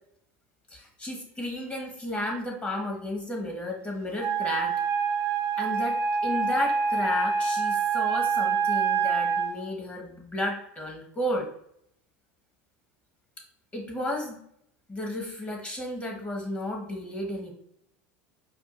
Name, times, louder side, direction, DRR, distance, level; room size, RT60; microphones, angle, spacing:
voice 1, 0.7-4.7 5.6-11.5 13.7-14.4 14.9-17.5, left 1 dB, 15° left, 0 dB, 1.2 m, -33 dB
Wind instrument woodwind instrument, 4.2-9.6, right 6 dB, 40° right, 0.4 m, -26 dB
4.8 x 2.3 x 2.5 m, 0.71 s
hypercardioid pair, 90°, 7 cm